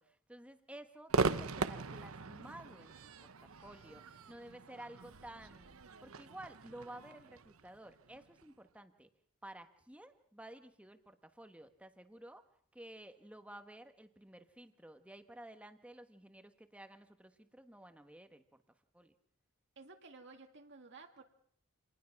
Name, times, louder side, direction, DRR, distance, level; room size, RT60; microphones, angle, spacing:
voice 1, 0.0-5.7 6.0-9.1 9.4-12.4 12.7-18.4 18.9-19.1, right 1 dB, 5° right, 7 dB, 1.4 m, -53 dB
Crowd / Fireworks, 1.1-8.4, right 4 dB, 75° right, 1.0 m, -39 dB
voice 2, 19.8-21.2, right 3 dB, 55° right, 3 dB, 2.0 m, -54 dB
27.0 x 20.0 x 6.0 m, 0.63 s
head